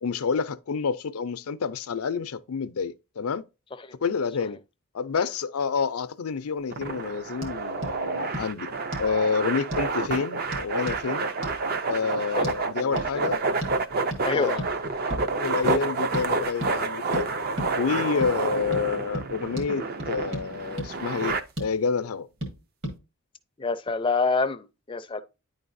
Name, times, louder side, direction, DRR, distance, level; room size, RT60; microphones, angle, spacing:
voice 1, 0.0-3.5 4.0-4.6 4.9-8.7 9.0-11.3 11.9-13.4 14.3-14.6 15.3-17.4 17.8-22.3, left 5 dB, 80° left, 0.5 m, -28 dB
sound 1, 6.7-21.4, right 3 dB, 45° right, 0.5 m, -29 dB
sound 2, 7.4-7.5 7.8-7.9 8.3-8.5 8.9-9.1 9.7-9.9 10.5-11.0 11.4-11.6 12.4-12.6 13.0-13.1 13.6-13.8 14.1-14.2 14.6-14.8 15.1-15.3 15.7-15.8 16.1-16.3 16.6-16.7 17.1-17.3 17.6-17.7 18.2-18.3 18.7-18.9 19.1-19.3 19.6-19.7 20.0-20.5 20.8-20.9 21.3-21.7 22.4-22.5 22.8-23.0, equal, 60° right, 1.9 m, -33 dB
voice 2, 12.4-12.9 14.2-14.6 23.6-25.2, left 4 dB, 25° left, 0.4 m, -27 dB
9.9 x 3.9 x 2.6 m
head